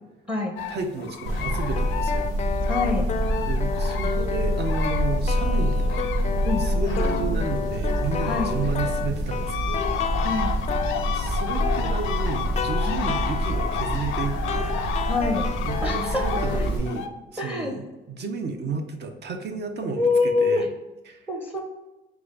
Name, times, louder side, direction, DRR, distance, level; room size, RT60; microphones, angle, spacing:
sound 1, 0.6-5.3 5.6-17.1, left 7 dB, 90° left, 0.5 m, -33 dB
voice 1, 0.7-2.3 3.5-9.9 11.1-14.8 15.6-20.7 21.1-21.2, right 4 dB, 55° right, 5 dB, 0.7 m, -32 dB
sound 2, 1.3-16.8, right 1 dB, 80° right, 0.9 m, -27 dB
sound 3, 1.6-16.7, left 6 dB, 35° left, 0.4 m, -32 dB
voice 2, 2.7-3.1 6.4-6.6 8.3-8.6 10.2-10.5 12.9-13.1 15.1-15.5 15.8-16.7 17.4-17.7 20.0-20.7 21.3-21.6, left 3 dB, 5° right, 2 dB, 0.6 m, -25 dB
4.9 x 2.4 x 3.8 m, 1.1 s
cardioid pair, 90°, 20 cm